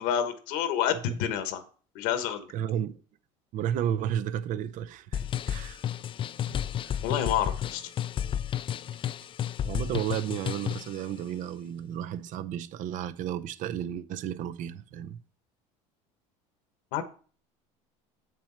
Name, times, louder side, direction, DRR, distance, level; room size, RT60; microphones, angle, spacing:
voice 1, 0.0-1.6 1.9-2.5 7.0-7.9 16.9-17.0, left 9 dB, 75° left, 1.2 m, -28 dB
voice 2, 2.5-3.0 3.5-5.8 9.6-15.2, right 10 dB, 55° right, 0.6 m, -32 dB
sound 1, 5.1-11.0, left 10 dB, 35° left, 0.4 m, -32 dB
7.3 x 6.2 x 4.4 m
supercardioid pair, 100°, 16 cm